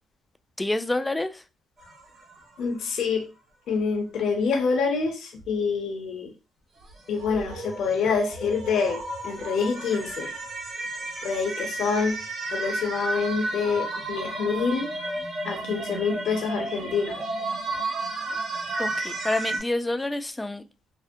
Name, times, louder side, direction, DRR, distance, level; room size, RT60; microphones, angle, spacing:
voice 1, 0.6-1.4 18.8-20.6, left 2 dB, 10° left, 0.3 m, -28 dB
sound 1, 1.8-2.8 6.8-19.6, right 2 dB, 60° right, 1.0 m, -33 dB
voice 2, 2.6-3.2 3.7-6.3 7.1-10.3 11.2-12.2 12.5-14.9 15.4-17.2, left 5 dB, 75° left, 0.7 m, -26 dB
2.6 x 2.0 x 2.5 m
cardioid pair, 90°, 0 cm